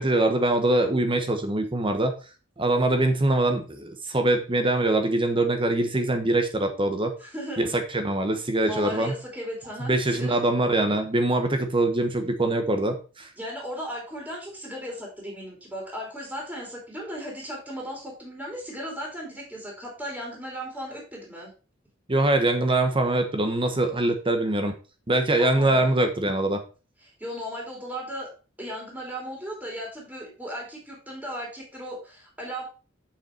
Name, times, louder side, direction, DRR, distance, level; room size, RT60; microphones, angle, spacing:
voice 1, 0.0-2.2 2.6-7.1 7.6-9.1 9.8-13.3 22.1-24.7 25.1-26.6, right 2 dB, 25° right, 6 dB, 1.2 m, -23 dB
voice 2, 7.2-7.7 8.6-10.4 13.4-21.5 25.4-25.9 27.2-28.3 28.6-32.6, equal, 5° right, -2 dB, 3.0 m, -36 dB
7.3 x 5.7 x 4.4 m, 0.33 s
head